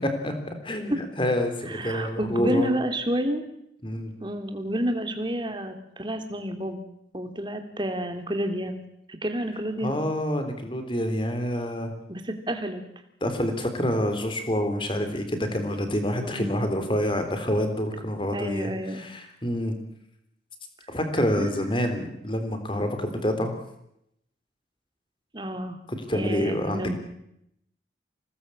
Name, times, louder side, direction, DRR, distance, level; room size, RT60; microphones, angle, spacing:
voice 1, 0.0-2.8 3.8-4.1 9.8-11.9 13.2-19.7 20.9-23.6 25.9-27.0, equal, 25° left, 7 dB, 3.8 m, -27 dB
voice 2, 1.7-3.4 4.2-6.8 7.1-8.8 9.2-10.0 12.1-12.8 16.2-16.6 18.3-19.0 21.4-21.9 25.3-25.8 26.1-27.0, equal, 25° right, 6 dB, 2.9 m, -30 dB
25.5 x 19.0 x 8.7 m, 0.79 s
head